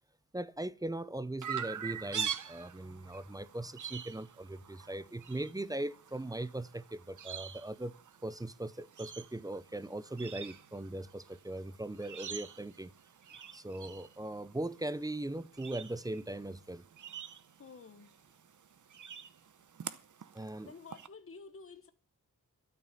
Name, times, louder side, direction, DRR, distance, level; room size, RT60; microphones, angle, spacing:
voice 1, 0.3-7.9 8.2-12.9 13.5-16.8 20.3-20.7, right 1 dB, 10° right, 0.5 m, -39 dB
Chirp tweet, 1.4-21.1, right 8 dB, 60° right, 0.8 m, -45 dB
voice 2, 17.6-18.1 20.6-21.9, left 4 dB, 40° left, 1.2 m, -51 dB
12.0 x 7.0 x 9.8 m
wide cardioid pair, 110°, 35 cm